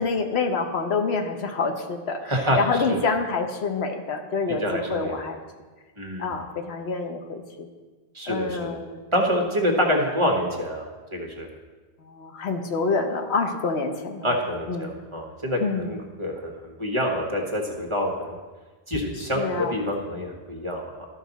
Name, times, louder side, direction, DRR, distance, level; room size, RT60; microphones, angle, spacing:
voice 1, 0.0-2.2 2.6-5.4 6.2-7.7 8.3-9.0 12.1-14.2 14.7-14.9 15.6-15.9 19.4-19.7, left 4 dB, 85° left, 5 dB, 1.1 m, -27 dB
voice 2, 2.2-2.6 2.9-3.0 4.5-5.3 6.0-6.3 8.1-8.8 9.1-11.5 14.2-18.4 18.9-21.1, equal, 30° right, 1 dB, 1.2 m, -27 dB
13.0 x 5.8 x 4.0 m, 1.3 s
omnidirectional pair, 1.1 m